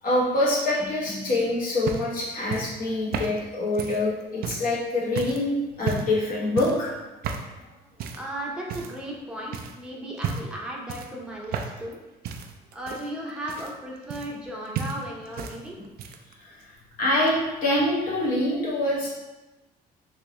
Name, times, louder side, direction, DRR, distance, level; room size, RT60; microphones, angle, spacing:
voice 1, 0.0-6.9 15.8-15.9 16.4-16.7 17.0-19.1, left 1 dB, 55° left, -5 dB, 1.3 m, -25 dB
sound 1, 1.3-4.7 5.2-5.4 5.8-6.2 6.6-6.9 7.2-7.5 8.0-8.3 8.7-9.2 9.5-9.8 10.2-10.6 10.9-11.9 12.2-14.5 14.7-15.6 15.8-16.3 17.3-17.4, right 6 dB, 65° right, 0.4 m, -33 dB
voice 2, 8.2-12.0 12.7-15.8, right 1 dB, 5° right, -3 dB, 0.8 m, -35 dB
3.5 x 2.8 x 3.0 m, 1.1 s
cardioid pair, 110°, 17 cm